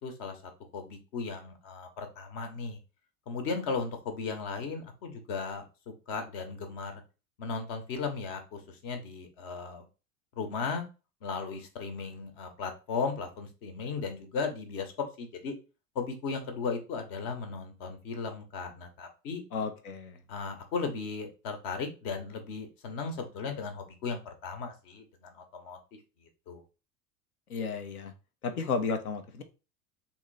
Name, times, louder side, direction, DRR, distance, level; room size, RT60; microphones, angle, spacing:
voice 1, 0.0-2.8 3.3-7.0 7.4-9.8 10.4-10.8 11.2-15.5 15.9-19.4 20.3-26.6, left 4 dB, 55° left, 1.1 m, -36 dB
voice 2, 19.5-20.2 27.5-28.1 28.4-29.4, left 5 dB, 75° left, 0.8 m, -33 dB
3.5 x 2.7 x 3.2 m
figure-of-eight pair, 80°, 44 cm